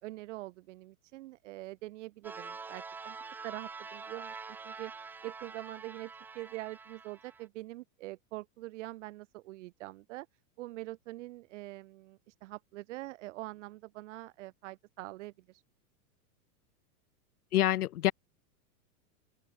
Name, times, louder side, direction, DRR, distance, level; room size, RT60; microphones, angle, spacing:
voice 1, 0.0-3.2 3.4-10.3 10.6-15.6, right 18 dB, 50° right, 3.4 m, -44 dB
sound 1, 2.2-7.5, right 5 dB, 5° right, 0.6 m, -46 dB
voice 2, 17.5-18.1, left 13 dB, 70° left, 3.8 m, -26 dB
open air
supercardioid pair, 170°, 47 cm